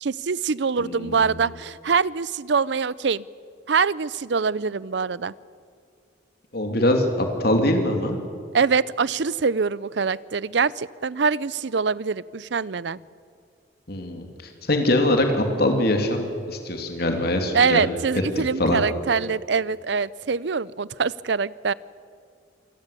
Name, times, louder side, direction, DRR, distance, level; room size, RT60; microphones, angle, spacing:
voice 1, 0.0-3.2 3.7-5.3 8.5-13.0 17.5-21.7, right 5 dB, 65° right, 21 dB, 0.6 m, -24 dB
voice 2, 0.8-1.5 6.5-8.2 13.9-18.0 18.3-18.8, left 1 dB, 55° left, 4 dB, 3.0 m, -23 dB
27.0 x 19.0 x 8.4 m, 2.4 s
head